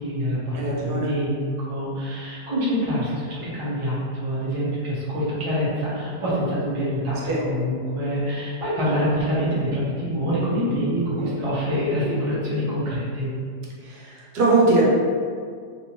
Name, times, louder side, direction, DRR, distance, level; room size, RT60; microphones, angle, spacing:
voice 1, 0.0-13.3, equal, 25° right, -9 dB, 0.7 m, -26 dB
voice 2, 0.6-1.1 7.3-7.4 10.9-11.4 13.9-14.9, right 3 dB, 75° right, -4 dB, 1.2 m, -22 dB
3.3 x 2.8 x 2.9 m, 2.1 s
omnidirectional pair, 1.8 m